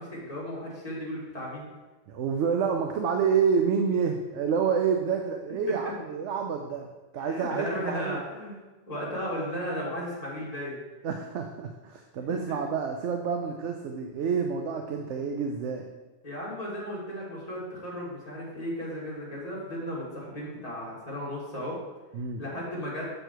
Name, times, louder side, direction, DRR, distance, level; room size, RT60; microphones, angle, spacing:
voice 1, 0.0-1.7 5.7-5.8 7.2-8.6 8.9-10.8 12.3-12.6 16.2-21.8 22.4-23.1, equal, 30° left, -6 dB, 2.5 m, -35 dB
voice 2, 2.1-6.9 7.1-8.2 11.0-15.8 22.1-22.4, right 6 dB, 70° right, 4 dB, 0.9 m, -28 dB
6.6 x 6.4 x 4.6 m, 1.2 s
omnidirectional pair, 1.3 m